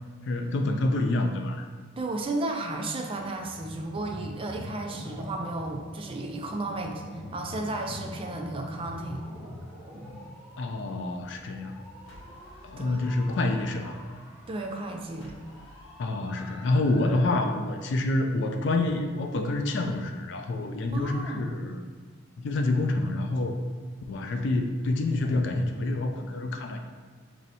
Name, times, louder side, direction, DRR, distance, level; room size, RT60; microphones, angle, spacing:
voice 1, 0.2-1.7 10.6-11.8 12.6-14.0 16.0-21.9 22.4-23.6 24.1-26.8, left 2 dB, 65° left, 5 dB, 0.4 m, -27 dB
voice 2, 2.0-9.2 12.8-13.1 14.5-15.4 20.9-21.5, right 2 dB, 30° right, 2 dB, 0.3 m, -33 dB
sound 1, 3.1-10.3, left 1 dB, 75° right, 1.4 m, -43 dB
sound 2, 5.9-17.6, equal, 5° right, 0.8 m, -52 dB
sound 3, 10.2-16.9, left 2 dB, 90° left, 0.7 m, -53 dB
3.1 x 2.7 x 4.1 m, 1.5 s
head